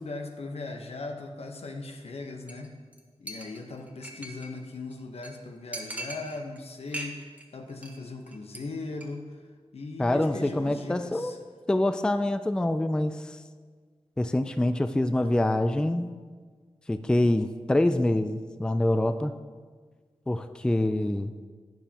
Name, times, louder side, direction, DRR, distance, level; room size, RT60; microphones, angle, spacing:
voice 1, 0.0-2.8 3.2-9.5 9.7-11.4, left 3 dB, 75° left, 4 dB, 1.0 m, -39 dB
Chink clink, 2.5-2.7 2.9-3.0 3.3-4.6 4.9-5.0 5.2-5.3 5.7-6.6 6.9-7.4 7.7-8.0 8.3-8.6 8.9-9.1, right 1 dB, 15° right, 1.1 m, -39 dB
voice 2, 10.0-11.3 11.7-13.4 14.2-16.1 16.9-19.3 20.3-21.3, left 1 dB, 10° left, 10 dB, 0.3 m, -25 dB
12.0 x 9.5 x 2.9 m, 1.6 s
wide cardioid pair, 125°, 10 cm